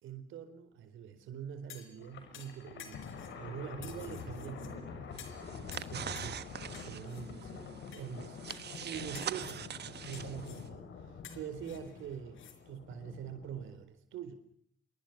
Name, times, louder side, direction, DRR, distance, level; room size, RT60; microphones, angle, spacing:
voice 1, 0.0-3.1 3.4-5.1 5.9-6.5 6.8-8.4 8.8-14.4, right 8 dB, 85° right, 11 dB, 4.2 m, -44 dB
sound 1, 1.7-2.0 2.3-3.4 3.8-4.7 5.2-5.4 5.7-6.4 6.7-7.2 7.9-8.1 8.5-8.8 9.1-9.6 10.1-10.7 11.2-12.6 12.9-13.0, left 9 dB, 85° left, 4.6 m, -52 dB
Thunder, 2.0-13.8, left 5 dB, 65° left, 6.9 m, -46 dB
sound 2, 5.1-10.7, right 9 dB, 55° right, 1.3 m, -44 dB
27.5 x 23.5 x 6.0 m, 0.63 s
cardioid pair, 90°, 20 cm